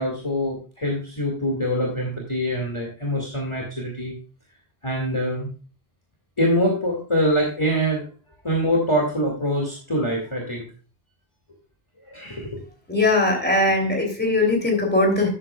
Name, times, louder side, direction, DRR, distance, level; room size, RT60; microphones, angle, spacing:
voice 1, 0.0-4.1 4.8-5.5 6.4-8.1 8.4-10.6 12.1-12.6, equal, 25° left, -1 dB, 2.2 m, -24 dB
voice 2, 12.9-15.3, left 2 dB, 10° left, 1 dB, 2.9 m, -20 dB
12.5 x 8.5 x 2.3 m, 0.35 s
omnidirectional pair, 1.1 m